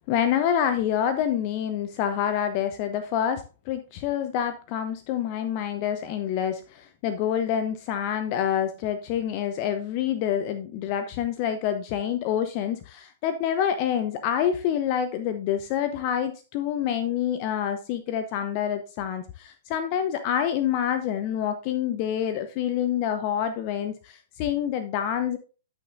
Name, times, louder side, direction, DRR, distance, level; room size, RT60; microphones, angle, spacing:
voice 1, 0.1-25.4, left 9 dB, 40° left, 9 dB, 0.8 m, -27 dB
12.5 x 6.3 x 2.6 m, 0.35 s
figure-of-eight pair, 110°, 0 cm